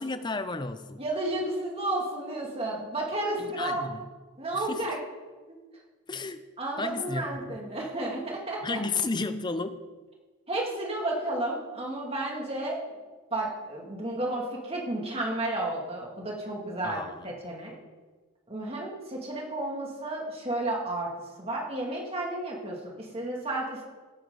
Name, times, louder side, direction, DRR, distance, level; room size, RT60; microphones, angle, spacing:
voice 1, 0.0-1.0 3.4-4.1 4.5-5.0 6.1-6.4 6.8-7.5 8.6-9.8 16.8-17.3, left 3 dB, 20° left, 11 dB, 0.5 m, -33 dB
voice 2, 1.0-3.9 4.4-5.0 5.5-5.6 6.6-8.8 10.5-13.0 13.3-17.8 18.5-21.1 21.4-23.8, right 1 dB, 25° right, -1 dB, 2.4 m, -32 dB
17.0 x 9.8 x 3.9 m, 1.3 s
head